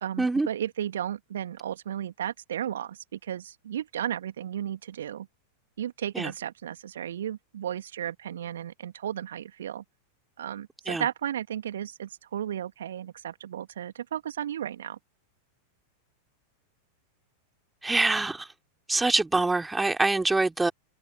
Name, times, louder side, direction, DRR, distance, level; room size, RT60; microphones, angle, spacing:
voice 1, 0.0-5.3 5.8-9.8 10.4-15.0, right 10 dB, 60° right, 2.1 m, -34 dB
voice 2, 17.8-18.5 18.9-20.7, right 3 dB, 10° right, 3.0 m, -25 dB
figure-of-eight pair, 90°, 0 cm